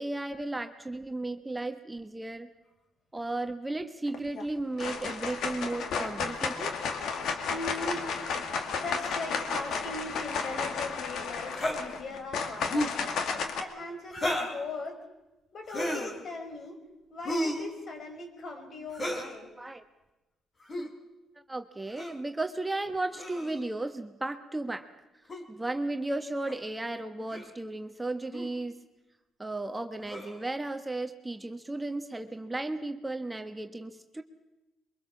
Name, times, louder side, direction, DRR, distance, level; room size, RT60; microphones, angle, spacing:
voice 1, 0.0-2.5 3.1-6.8 19.6-19.8 20.8-20.9 21.5-24.9 25.5-28.8 29.4-34.2, right 2 dB, 15° right, 6 dB, 1.3 m, -34 dB
sound 1, 4.1-4.5 4.8-13.6, left 5 dB, 75° left, 2.4 m, -33 dB
voice 2, 7.5-13.0 13.6-15.1 15.5-16.8 17.1-19.5, left 2 dB, 55° left, 3 dB, 5.4 m, -39 dB
sound 2, 11.5-11.8 12.6-13.0 14.1-14.6 15.7-16.2 17.3-17.7 18.9-19.3 20.6-20.9 22.0-22.2 23.2-23.6 25.3-25.4 26.5-26.6 27.3-27.5 28.3-28.5 30.1-30.4, equal, 35° left, 4.0 m, -32 dB
23.5 x 23.0 x 7.2 m, 1.0 s
cardioid pair, 90°, 0 cm